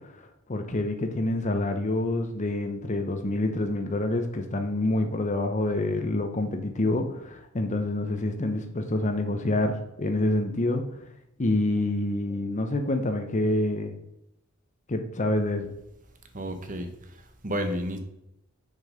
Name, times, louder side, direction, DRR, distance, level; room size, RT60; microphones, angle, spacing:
voice 1, 0.5-9.7 10.0-10.8 11.4-14.0 14.9-15.7, left 2 dB, 40° left, 5 dB, 0.8 m, -27 dB
voice 2, 16.3-18.0, equal, 40° right, 7 dB, 1.1 m, -32 dB
6.5 x 5.2 x 5.1 m, 0.82 s
head